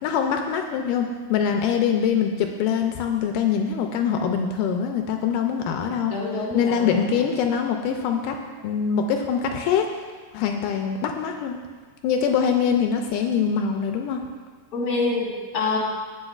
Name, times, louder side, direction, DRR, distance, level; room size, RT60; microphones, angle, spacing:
voice 1, 0.0-6.1 6.5-8.4 8.6-9.9 10.3-11.6 12.0-14.2, left 7 dB, 85° left, 4 dB, 2.1 m, -23 dB
voice 2, 6.1-7.2 14.7-15.8, left 3 dB, 35° left, -4 dB, 1.8 m, -26 dB
16.0 x 5.8 x 2.4 m, 1.5 s
omnidirectional pair, 3.8 m